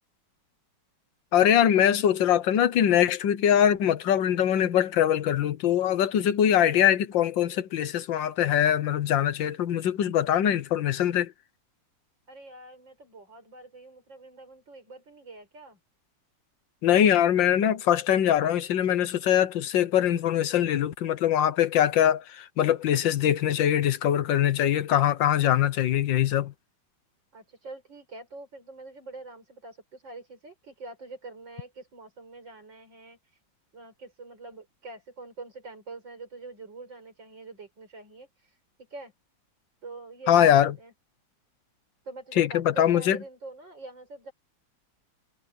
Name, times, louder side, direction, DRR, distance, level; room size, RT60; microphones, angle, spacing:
voice 1, 1.3-11.3 16.8-26.5 40.3-40.7 42.4-43.2, left 10 dB, 80° left, 1.7 m, -22 dB
voice 2, 12.3-15.8 27.3-33.2 33.7-38.6 38.9-39.1 39.8-40.9 42.0-44.3, right 3 dB, 75° right, 6.5 m, -45 dB
omnidirectional pair, 2.0 m